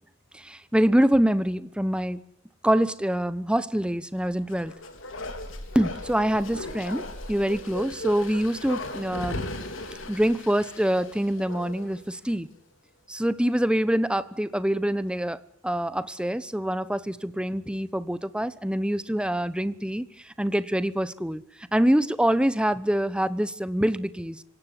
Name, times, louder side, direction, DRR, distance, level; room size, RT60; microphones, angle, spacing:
voice 1, 0.3-2.2 2.6-4.7 5.7-9.4 10.1-12.5 13.1-21.4 21.7-24.4, equal, 5° right, 15 dB, 0.9 m, -25 dB
Bark, 4.4-12.0 12.3-12.4, left 2 dB, 70° left, 3.9 m, -37 dB
26.5 x 17.5 x 9.9 m, 0.70 s
head